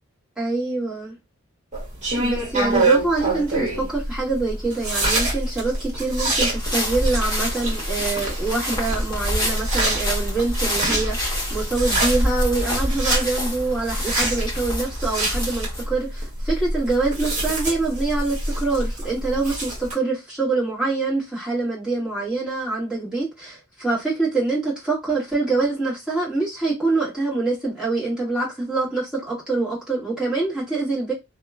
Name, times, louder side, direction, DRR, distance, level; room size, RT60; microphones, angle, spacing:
voice 1, 0.4-1.1 2.2-31.1, right 3 dB, 5° right, 1.4 m, -25 dB
sound 1, 1.7-19.9, right 2 dB, 35° right, 1.1 m, -26 dB
sound 2, 6.4-15.8, equal, 20° left, 0.9 m, -26 dB
2.8 x 2.1 x 2.3 m
head